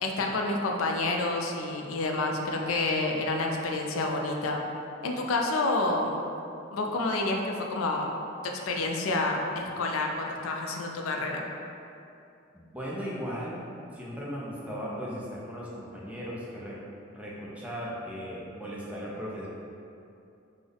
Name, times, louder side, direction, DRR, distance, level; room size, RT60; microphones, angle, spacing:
voice 1, 0.0-4.6 5.0-6.2 6.7-8.1 8.4-11.4, left 2 dB, 75° left, 2 dB, 0.4 m, -29 dB
voice 2, 12.5-13.6 13.9-16.8 17.1-19.5, equal, 5° right, -5 dB, 0.4 m, -37 dB
3.4 x 2.0 x 3.7 m, 2.7 s
head